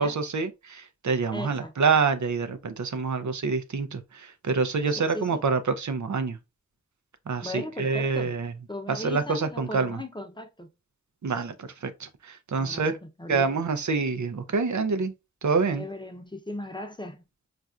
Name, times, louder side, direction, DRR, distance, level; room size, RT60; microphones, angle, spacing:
voice 1, 0.0-6.4 7.3-8.5 8.9-10.0 11.2-13.0 13.3-15.1 15.4-15.9, right 4 dB, 75° right, 0.5 m, -27 dB
voice 2, 1.3-1.7 5.0-5.4 7.4-8.3 8.7-10.7 12.5-12.9 13.2-13.6 15.7-17.2, left 1 dB, 15° left, 0.6 m, -37 dB
4.2 x 2.5 x 2.3 m
wide cardioid pair, 45°, 29 cm